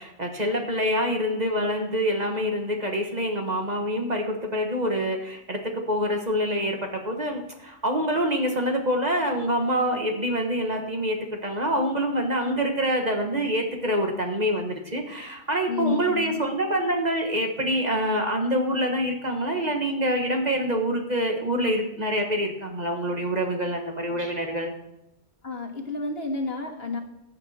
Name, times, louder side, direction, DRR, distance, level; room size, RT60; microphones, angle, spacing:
voice 1, 0.0-24.7, equal, 35° right, 3 dB, 1.4 m, -26 dB
voice 2, 15.7-16.4 25.4-27.0, left 3 dB, 55° left, 2 dB, 1.9 m, -30 dB
15.0 x 8.8 x 4.2 m, 0.86 s
omnidirectional pair, 1.2 m